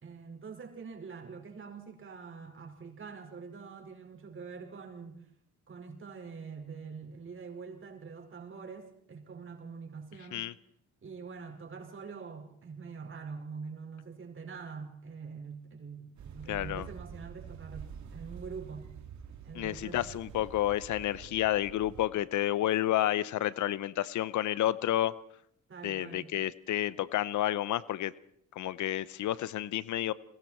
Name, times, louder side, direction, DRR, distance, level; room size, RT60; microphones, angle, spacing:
voice 1, 0.0-5.3 5.7-10.5 11.0-18.9 19.4-20.0 25.7-26.3, right 5 dB, 40° right, 5.3 m, -45 dB
sound 1, 16.2-22.1, right 7 dB, 70° right, 2.5 m, -47 dB
voice 2, 16.5-16.9 19.6-25.1 25.8-28.1 28.5-30.1, left 13 dB, 75° left, 0.8 m, -30 dB
29.5 x 21.5 x 4.5 m
cardioid pair, 90°, 30 cm